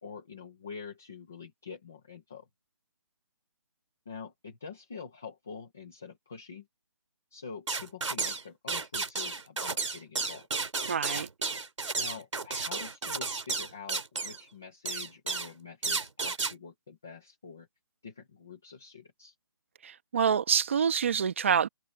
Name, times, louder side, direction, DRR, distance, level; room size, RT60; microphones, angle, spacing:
voice 1, 0.0-2.5 4.1-6.7 7.3-10.5 12.0-17.7 18.0-19.3, left 5 dB, 5° left, 0.5 m, -46 dB
sound 1, 7.7-8.4 8.7-14.4 14.8-15.5 15.8-16.5, right 4 dB, 75° right, 3.7 m, -32 dB
voice 2, 10.9-11.3 19.8-21.7, right 7 dB, 25° right, 1.4 m, -26 dB
hypercardioid pair, 180°, 16 cm